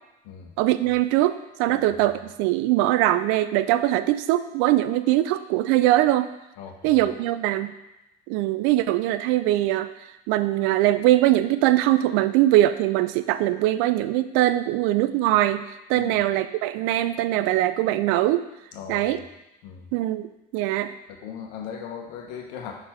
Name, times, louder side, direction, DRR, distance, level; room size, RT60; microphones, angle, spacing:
voice 1, 0.6-6.3 6.8-7.7 8.3-9.9 10.3-18.4 18.9-19.2 19.9-20.3 20.5-20.9, right 14 dB, 80° right, 12 dB, 0.4 m, -22 dB
voice 2, 6.6-7.0 15.9-16.2 18.7-19.2 19.6-19.9 21.1-22.7, left 7 dB, 85° left, 2 dB, 1.0 m, -38 dB
5.4 x 4.5 x 4.4 m, 0.94 s
supercardioid pair, 80°, 21 cm